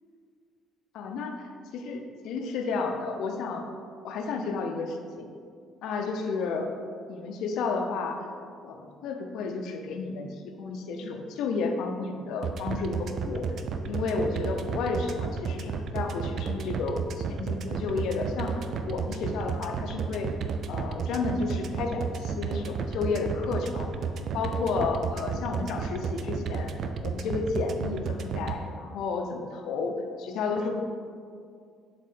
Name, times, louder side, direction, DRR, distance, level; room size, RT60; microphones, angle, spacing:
voice 1, 0.9-1.4 1.7-3.7 4.0-5.3 5.8-6.7 7.1-8.3 8.6-13.5 13.9-20.3 20.7-23.9 24.3-26.7 27.0-30.8, left 4 dB, 65° left, 5 dB, 0.6 m, -32 dB
sound 1, 12.4-28.5, right 6 dB, 55° right, 0.4 m, -31 dB
7.4 x 4.2 x 3.6 m, 2.3 s
hypercardioid pair, 50°, 0 cm